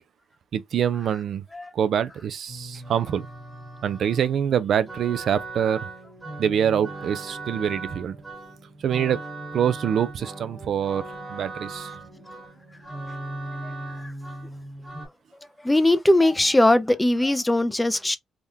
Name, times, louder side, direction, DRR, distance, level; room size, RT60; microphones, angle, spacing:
voice 1, 0.5-1.4 1.7-3.3 3.8-5.9 6.4-8.2 8.8-9.2 9.5-11.9, right 8 dB, 65° right, 0.4 m, -25 dB
sound 1, 2.5-15.1, right 2 dB, 30° right, 1.5 m, -38 dB
voice 2, 15.6-18.2, left 1 dB, 10° left, 0.5 m, -20 dB
3.5 x 2.2 x 2.6 m
cardioid pair, 90°, 0 cm